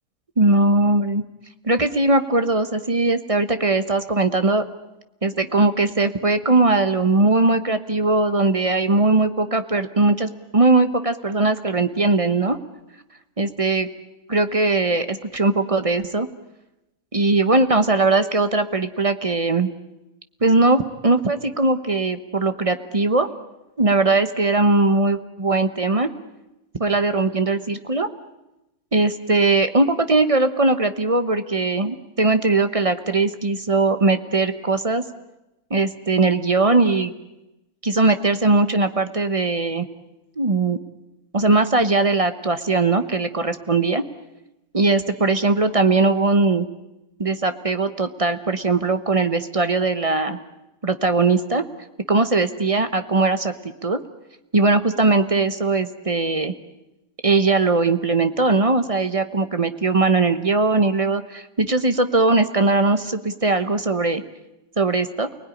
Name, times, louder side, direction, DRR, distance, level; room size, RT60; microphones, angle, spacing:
voice 1, 0.4-1.2 1.6-4.6 5.2-12.6 13.4-13.9 14.3-16.3 17.1-19.7 20.4-23.3 23.8-26.1 26.8-28.1 28.9-35.0 35.7-37.1 37.8-39.9 40.4-40.8 41.3-44.0 44.7-46.7 47.2-50.4 50.8-51.6 52.1-53.5 53.8-54.0 54.5-56.5 57.2-64.2 64.8-65.3, right 3 dB, 35° right, 9 dB, 0.5 m, -20 dB
29.5 x 20.0 x 10.0 m, 0.95 s
omnidirectional pair, 2.4 m